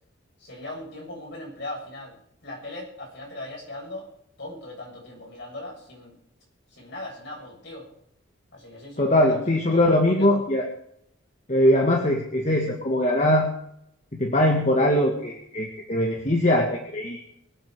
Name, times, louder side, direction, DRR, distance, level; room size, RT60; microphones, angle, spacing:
voice 1, 0.4-4.1 4.4-6.2 6.7-7.9 8.5-10.4, left 1 dB, 60° left, -2 dB, 7.9 m, -39 dB
voice 2, 9.0-10.7 11.5-13.5 14.2-17.2, left 1 dB, 35° left, 2 dB, 1.7 m, -21 dB
23.5 x 8.7 x 4.8 m, 0.73 s
head